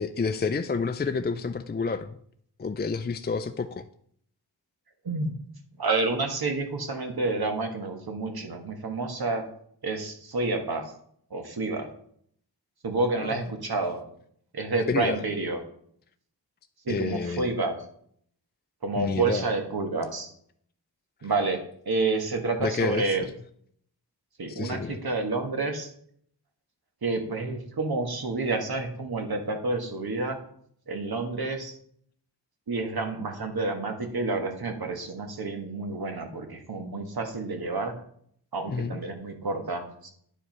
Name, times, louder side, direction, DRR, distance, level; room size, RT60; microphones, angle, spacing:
voice 1, 0.0-2.2 2.6-3.8 13.2-13.4 14.9-15.2 16.9-17.5 19.0-19.4 22.6-23.2 24.5-25.0 38.7-39.0, left 4 dB, 25° left, 8 dB, 0.5 m, -29 dB
voice 2, 5.0-5.3 5.8-9.4 9.8-10.9 11.3-11.9 12.8-14.0 14.5-15.6 16.8-17.8 18.8-20.3 21.2-23.2 24.4-25.9 27.0-30.4 30.9-31.7 32.7-37.9 38.5-40.1, right 3 dB, 60° right, 4 dB, 1.7 m, -29 dB
9.9 x 4.7 x 5.4 m, 0.64 s
cardioid pair, 65°, 42 cm